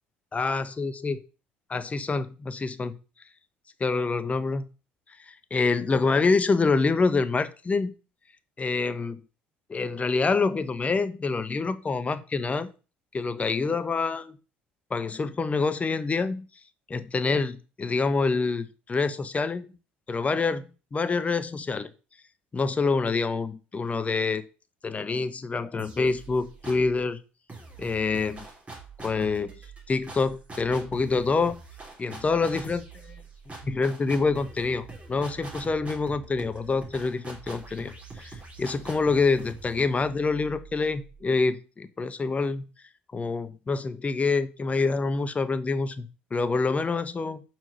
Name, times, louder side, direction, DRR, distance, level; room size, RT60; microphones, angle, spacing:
voice 1, 0.3-1.2 1.7-3.0 3.8-4.7 5.5-7.9 8.6-9.2 9.7-12.7 13.1-14.4 14.9-16.5 16.9-19.7 20.1-21.9 22.5-24.4 24.8-27.2 27.8-28.5 29.0-29.5 29.9-31.5 32.0-33.1 33.5-42.7 43.1-47.4, left 4 dB, 25° left, 11 dB, 1.0 m, -26 dB
sound 1, 25.8-27.0 27.5-41.2, right 3 dB, 30° right, 3.6 m, -44 dB
6.1 x 4.5 x 6.6 m, 0.33 s
hypercardioid pair, 65°, 5 cm